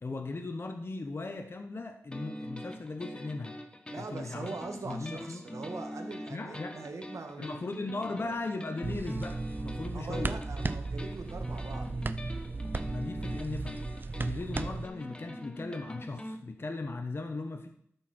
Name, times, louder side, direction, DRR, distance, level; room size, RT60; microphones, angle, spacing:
voice 1, 0.0-3.5 4.0-4.5 4.9-5.4 6.3-6.8 7.4-10.4 12.9-17.7, left 3 dB, 50° left, 5 dB, 1.1 m, -38 dB
sound 1, 2.1-16.4, left 1 dB, 20° left, 1.2 m, -44 dB
voice 2, 3.9-7.9 8.2-8.4 9.9-11.9, right 3 dB, 75° right, 4 dB, 1.8 m, -42 dB
sound 2, 8.8-14.9, right 3 dB, 40° right, 0.6 m, -35 dB
13.0 x 7.0 x 4.4 m, 0.68 s
wide cardioid pair, 80°, 5 cm